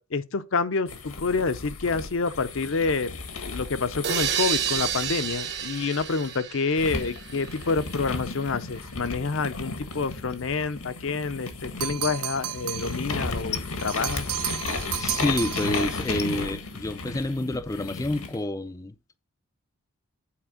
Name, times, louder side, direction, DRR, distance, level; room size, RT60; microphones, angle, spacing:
voice 1, 0.0-14.3, left 4 dB, 60° left, 0.6 m, -28 dB
sound 1, 0.9-6.3 6.8-18.4, left 3 dB, 85° left, 1.6 m, -34 dB
sound 2, 4.0-7.8, right 9 dB, 50° right, 1.1 m, -30 dB
sound 3, 11.8-13.0 13.8-16.0, right 13 dB, 90° right, 0.6 m, -33 dB
voice 2, 15.0-19.2, left 1 dB, 15° left, 0.4 m, -29 dB
8.7 x 4.4 x 5.0 m
head